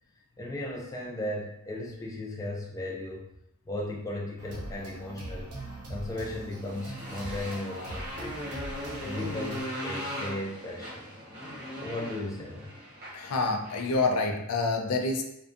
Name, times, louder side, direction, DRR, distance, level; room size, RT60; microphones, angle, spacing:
voice 1, 0.4-3.3 3.7-5.5 5.9-8.6 9.0-11.0 11.8-12.7, left 1 dB, 15° left, -2 dB, 0.3 m, -36 dB
sound 1, 4.4-9.6, right 1 dB, 70° right, 0.6 m, -42 dB
Motorcycle, 6.5-13.9, equal, 45° right, 0.9 m, -39 dB
voice 2, 13.1-15.2, left 3 dB, 90° left, 3 dB, 0.4 m, -27 dB
2.6 x 2.2 x 2.4 m, 0.79 s
head